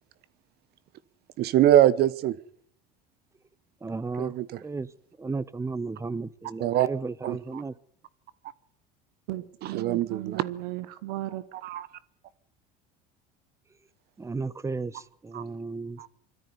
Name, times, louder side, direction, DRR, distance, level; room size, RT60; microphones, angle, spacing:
voice 1, 1.4-2.4 4.2-4.5 6.6-6.9 7.2-7.4 9.6-10.4 11.6-11.9 15.3-15.4 16.0-16.1, right 12 dB, 60° right, 17 dB, 1.1 m, -23 dB
voice 2, 3.8-4.9 5.2-7.7 14.2-16.0, right 4 dB, 15° right, 19 dB, 1.0 m, -34 dB
voice 3, 9.3-11.4, right 15 dB, 85° right, 13 dB, 1.3 m, -36 dB
21.5 x 13.5 x 9.7 m, 0.64 s
supercardioid pair, 90°, 19 cm